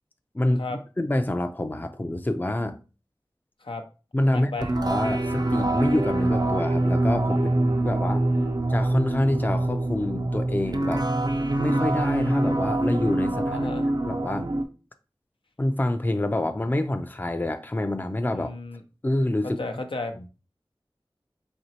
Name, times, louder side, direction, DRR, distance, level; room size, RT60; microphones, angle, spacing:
voice 1, 1.0-2.8 4.1-7.5 7.9-8.2 8.7-11.1 11.6-13.7 14.0-14.5 15.6-18.5 19.0-19.6 20.2-20.3, left 1 dB, 20° left, 0.4 m, -26 dB
voice 2, 4.3-4.7 7.3-8.6 13.5-13.9 18.3-18.8 19.4-20.2, left 2 dB, 85° left, 0.5 m, -35 dB
sound 1, 4.6-14.6, right 2 dB, 50° right, 0.4 m, -25 dB
4.3 x 2.9 x 2.8 m
wide cardioid pair, 50°, 9 cm